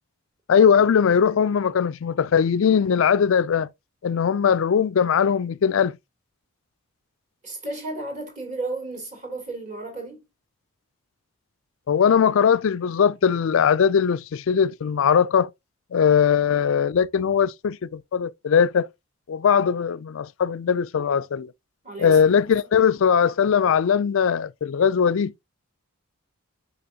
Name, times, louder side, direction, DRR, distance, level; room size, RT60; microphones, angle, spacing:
voice 1, 0.5-3.7 4.0-6.0 11.9-15.5 15.9-18.9 19.3-21.5 22.0-25.3, left 7 dB, 60° left, 0.3 m, -20 dB
voice 2, 7.4-10.2 21.8-22.5, right 2 dB, 30° right, 2.9 m, -33 dB
6.9 x 5.6 x 2.7 m
head